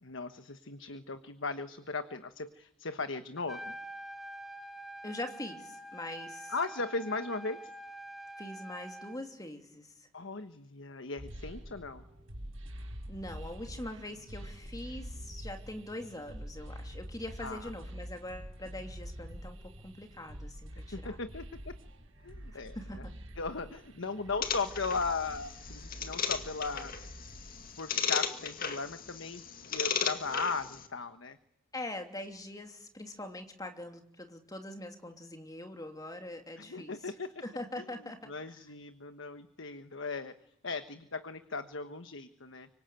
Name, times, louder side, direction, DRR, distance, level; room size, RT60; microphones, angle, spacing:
voice 1, 0.0-3.8 6.5-7.6 10.1-12.1 17.4-17.7 20.9-21.7 22.2-23.0 23.4-26.9 27.8-29.4 29.7-31.4 36.6-37.3 37.8-37.9 38.2-40.4 40.6-42.7, left 4 dB, 70° left, 9 dB, 1.3 m, -37 dB
Trumpet, 3.4-9.2, right 1 dB, ahead, 1.9 m, -46 dB
voice 2, 5.0-6.5 8.4-10.1 13.1-21.2 22.7-23.0 31.7-36.9 37.4-38.3, left 1 dB, 20° left, 4 dB, 3.0 m, -43 dB
sound 1, 11.2-27.8, equal, 80° right, 6.1 m, -46 dB
sound 2, 24.4-30.9, left 7 dB, 45° left, 2.0 m, -36 dB
25.0 x 24.5 x 9.2 m, 0.76 s
head